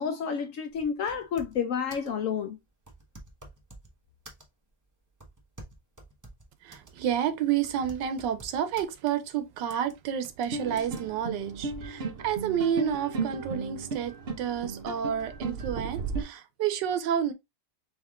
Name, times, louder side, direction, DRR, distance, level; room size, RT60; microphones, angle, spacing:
voice 1, 0.0-2.6, left 7 dB, 70° left, 0.7 m, -30 dB
sound 1, 0.7-1.7 1.9-2.2 2.8-3.9 4.3-4.7 5.2-7.0 7.2-7.3 7.6-8.9 9.7-10.0 10.2-10.5 10.8-11.0, right 1 dB, 25° right, 0.4 m, -49 dB
voice 2, 6.6-17.3, right 9 dB, 80° right, 1.3 m, -30 dB
sound 2, 10.5-16.2, right 4 dB, 50° right, 0.8 m, -35 dB
3.6 x 3.3 x 3.5 m
omnidirectional pair, 1.9 m